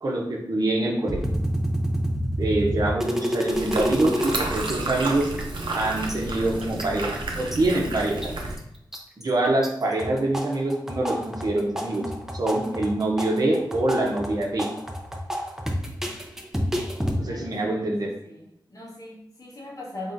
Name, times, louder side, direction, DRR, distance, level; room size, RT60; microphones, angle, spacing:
voice 1, 0.0-1.2 2.4-5.2 5.7-8.3 9.2-12.0 12.3-14.7 17.2-18.1, right 2 dB, 50° right, -1 dB, 0.8 m, -25 dB
sound 1, 1.1-4.4 4.7-4.8 5.0-5.7 6.1-7.6 8.0-8.6 8.9-9.7 10.0-17.2, equal, 5° right, 0.6 m, -28 dB
sound 2, 3.5-8.6, right 2 dB, 85° right, 0.6 m, -31 dB
voice 2, 17.2-17.8 18.2-18.3 18.7-20.1, left 1 dB, 45° left, -3 dB, 1.1 m, -39 dB
3.6 x 3.6 x 2.6 m, 0.81 s
cardioid pair, 60°, 8 cm